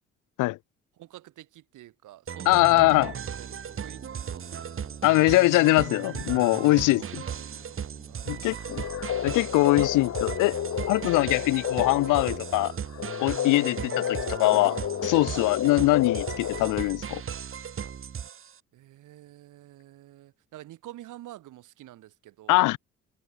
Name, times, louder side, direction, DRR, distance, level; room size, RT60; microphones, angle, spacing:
voice 1, 1.0-4.9 6.4-7.8 8.1-8.9 15.3-15.6 18.7-22.7, right 14 dB, 85° right, 4.0 m, -49 dB
sound 1, 2.3-18.6, right 8 dB, 45° right, 1.6 m, -36 dB
voice 2, 2.5-3.1 5.0-7.2 8.3-8.8 9.2-10.5 10.9-12.7 13.2-17.2 22.5-22.8, left 20 dB, 85° left, 0.5 m, -22 dB
sound 2, 2.5-15.9, left 1 dB, 10° left, 5.2 m, -59 dB
sound 3, 8.6-17.0, left 10 dB, 60° left, 1.8 m, -32 dB
cardioid pair, 90°, 30 cm